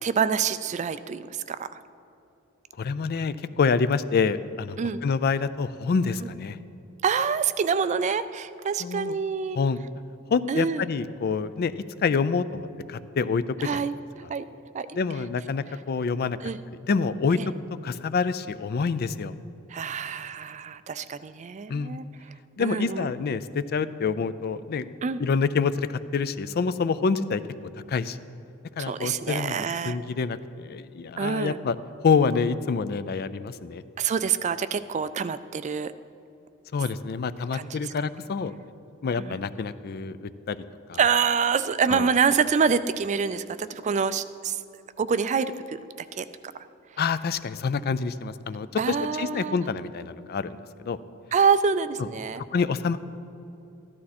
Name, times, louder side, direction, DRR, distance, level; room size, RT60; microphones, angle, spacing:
voice 1, 0.0-1.8 4.8-5.0 7.0-9.6 10.5-10.9 13.6-13.9 14.3-14.4 14.7-14.9 16.4-16.6 17.4-17.5 19.7-22.0 22.6-23.1 25.0-25.2 28.8-30.0 31.2-31.6 34.0-35.9 37.5-37.7 39.2-39.4 41.0-44.6 45.0-45.9 46.2-46.3 48.8-49.6 51.3-52.4, right 6 dB, 35° right, 13 dB, 0.3 m, -26 dB
voice 2, 2.8-6.6 8.8-9.2 9.6-9.8 10.3-11.7 12.0-13.8 14.9-16.4 16.9-17.4 17.8-19.3 21.7-22.0 22.6-24.9 25.2-27.4 27.9-28.2 28.8-31.8 32.0-33.8 36.7-38.5 39.0-40.6 40.9-41.0 41.9-42.1 47.0-50.6 50.8-51.0 52.0-52.1 52.5-53.0, left 5 dB, 45° left, 14 dB, 0.4 m, -27 dB
14.0 x 12.0 x 4.2 m, 2.8 s
head